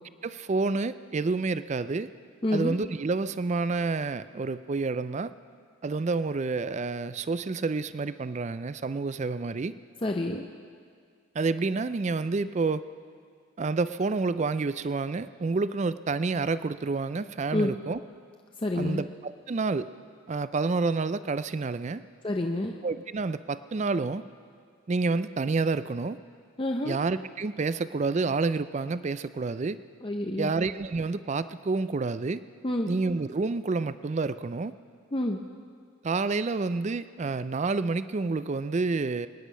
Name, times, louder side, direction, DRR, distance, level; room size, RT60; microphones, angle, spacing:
voice 1, 0.2-2.1 2.5-5.3 5.8-9.7 11.4-12.8 13.6-18.0 18.8-19.9 20.3-22.0 22.8-24.2 24.9-26.2 26.8-29.8 30.4-32.4 32.9-34.7 36.0-39.3, right 3 dB, 30° right, 14 dB, 0.3 m, -29 dB
voice 2, 2.4-2.8 10.0-10.5 17.5-17.7 18.6-19.0 22.2-22.8 26.6-27.0 30.0-30.5 32.6-32.9 35.1-35.4, left 1 dB, 25° left, 2 dB, 0.6 m, -28 dB
24.0 x 10.0 x 5.5 m, 2.1 s
head